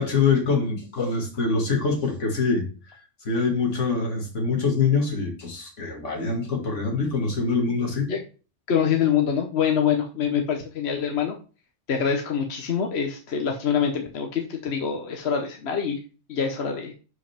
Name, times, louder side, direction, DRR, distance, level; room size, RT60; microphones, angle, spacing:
voice 1, 0.0-2.7 3.2-8.1, left 4 dB, 80° left, 2.5 m, -24 dB
voice 2, 8.7-11.3 11.9-16.0 16.3-16.9, left 7 dB, 65° left, 1.3 m, -25 dB
11.0 x 5.1 x 3.5 m
omnidirectional pair, 1.2 m